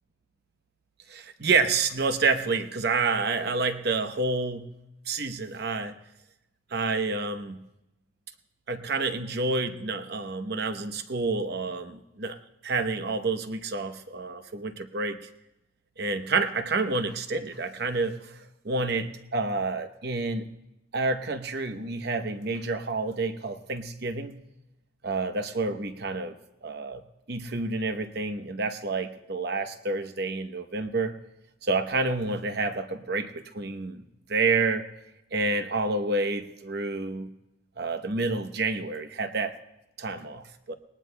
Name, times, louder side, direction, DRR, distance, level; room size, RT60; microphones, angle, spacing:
voice 1, 1.1-4.6 5.1-5.9 6.7-7.6 8.7-12.4 12.6-15.2 16.0-20.4 20.9-24.4 25.0-26.3 26.6-27.0 27.3-31.1 31.6-34.0 34.3-34.8 35.3-37.3 37.8-39.6 40.0-40.7, right 3 dB, 60° right, 8 dB, 0.8 m, -29 dB
20.0 x 19.0 x 2.2 m, 0.93 s
head